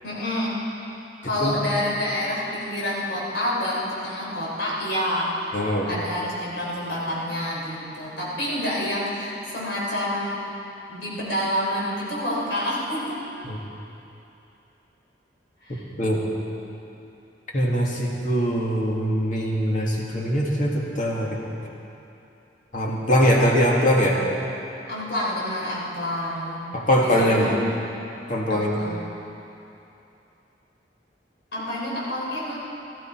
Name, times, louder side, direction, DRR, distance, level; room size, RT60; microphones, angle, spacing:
voice 1, 0.0-0.6 1.2-5.6 5.9-10.4 10.9-13.2 15.6-15.8 24.9-26.7 27.0-27.5 28.5-29.0 31.5-32.6, left 1 dB, 70° left, -5 dB, 4.2 m, -28 dB
voice 2, 5.5-5.9 13.4-13.6 16.0-16.2 17.5-21.4 22.7-24.2 26.7-27.6 28.3-28.8, equal, 45° left, -2 dB, 2.2 m, -22 dB
17.5 x 14.0 x 4.7 m, 2.9 s
head